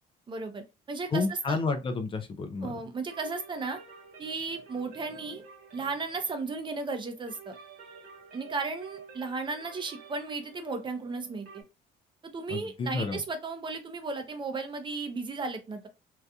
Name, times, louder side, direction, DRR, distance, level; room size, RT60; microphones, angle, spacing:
voice 1, 0.3-1.6 2.6-3.8 4.2-5.4 5.7-7.6 8.3-11.6 12.3-15.9, right 3 dB, 30° right, 0.6 m, -35 dB
voice 2, 1.1-2.7 12.5-13.2, left 3 dB, 30° left, 0.4 m, -30 dB
sound 1, 3.1-11.6, right 5 dB, 65° right, 1.1 m, -51 dB
2.7 x 2.4 x 2.2 m
cardioid pair, 110°, 17 cm